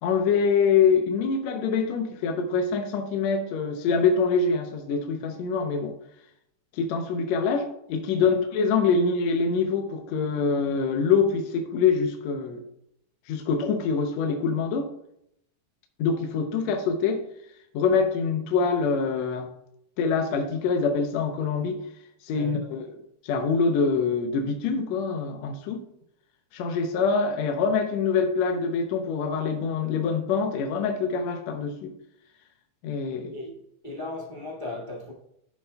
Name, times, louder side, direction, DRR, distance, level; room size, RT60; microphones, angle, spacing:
voice 1, 0.0-5.9 6.7-12.6 13.3-14.9 16.0-17.2 17.7-19.5 20.0-21.8 22.2-22.8 23.2-25.8 26.5-31.9 32.8-33.4, left 5 dB, 75° left, 1.8 m, -25 dB
voice 2, 22.3-22.6 33.3-35.1, left 2 dB, 30° left, 0.9 m, -37 dB
11.5 x 7.1 x 2.3 m
omnidirectional pair, 3.6 m